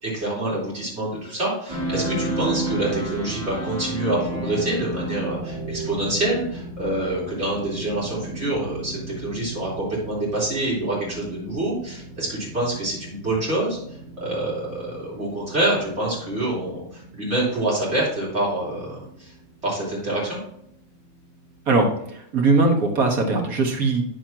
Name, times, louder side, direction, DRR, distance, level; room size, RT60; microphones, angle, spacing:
voice 1, 0.0-13.8 14.2-19.3 19.6-20.4, right 1 dB, 50° right, -6 dB, 4.3 m, -26 dB
sound 1, 1.7-21.6, right 2 dB, 15° right, 2.6 m, -34 dB
voice 2, 21.7-24.0, right 3 dB, 85° right, 2 dB, 1.9 m, -20 dB
9.3 x 7.3 x 2.9 m, 0.71 s
omnidirectional pair, 1.5 m